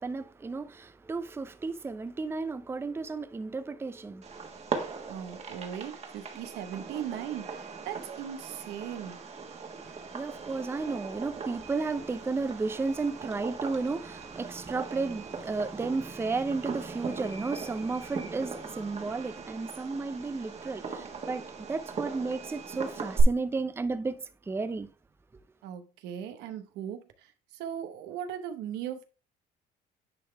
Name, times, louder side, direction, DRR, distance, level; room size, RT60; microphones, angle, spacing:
voice 1, 0.0-4.3 9.9-24.9, right 3 dB, 15° right, 0.5 m, -33 dB
Fireworks, 4.2-23.2, right 5 dB, 40° right, 1.5 m, -39 dB
voice 2, 5.1-9.2 25.6-29.0, right 9 dB, 90° right, 1.0 m, -38 dB
10.0 x 3.8 x 3.4 m
cardioid pair, 110°, 17 cm